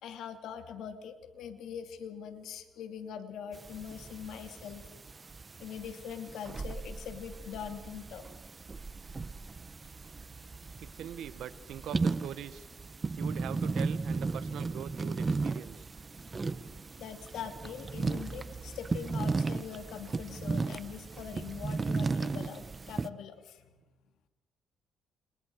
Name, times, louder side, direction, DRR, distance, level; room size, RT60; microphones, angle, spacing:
voice 1, 0.0-4.8 5.6-8.2 17.0-23.7, left 8 dB, 80° left, 7 dB, 2.8 m, -42 dB
sound 1, 3.5-23.1, right 4 dB, 30° right, 1.0 m, -36 dB
voice 2, 10.8-12.6 13.2-15.9, right 10 dB, 80° right, 13 dB, 1.4 m, -42 dB
29.5 x 28.0 x 4.8 m, 1.1 s
cardioid pair, 90°, 0 cm